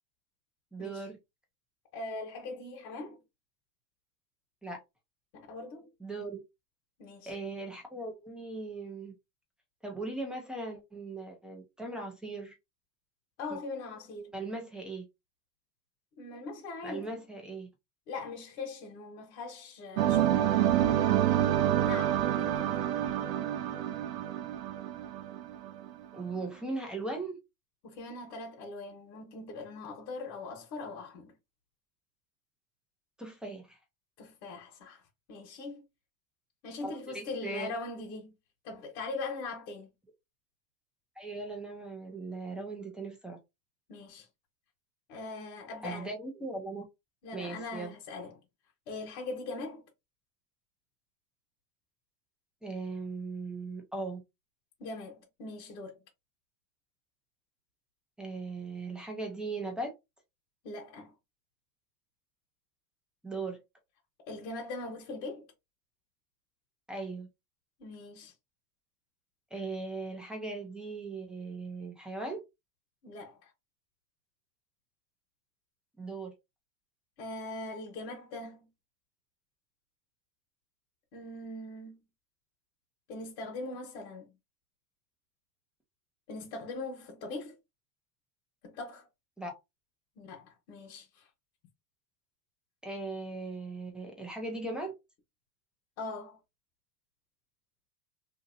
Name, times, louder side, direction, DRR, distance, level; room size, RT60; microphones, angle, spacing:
voice 1, 0.7-1.2 4.6-4.8 6.0-6.4 7.3-9.1 9.8-12.5 13.5-13.6 14.3-15.1 16.8-17.7 26.1-27.4 33.2-33.8 36.8-37.7 41.2-43.4 45.8-46.8 47.3-47.9 52.6-54.2 58.2-59.9 63.2-63.6 66.9-67.3 69.5-72.4 76.0-76.3 89.4-89.6 92.8-94.9, right 3 dB, ahead, 0.5 m, -38 dB
voice 2, 1.9-3.2 5.3-5.9 7.0-7.3 13.4-14.3 16.2-17.2 18.1-20.4 21.8-23.0 27.8-31.3 34.2-35.0 35.3-35.8 36.6-38.3 38.6-39.9 43.9-44.3 45.1-46.1 47.2-48.4 48.9-49.8 54.8-56.0 60.6-61.1 64.3-65.5 67.8-68.3 73.0-73.5 77.2-78.7 81.1-82.0 83.1-84.3 86.3-87.6 88.6-89.1 90.2-91.3 96.0-96.4, left 3 dB, 60° left, 1.3 m, -41 dB
sound 1, 20.0-25.9, right 11 dB, 75° right, 0.7 m, -28 dB
2.8 x 2.7 x 2.6 m
hypercardioid pair, 125°, 49 cm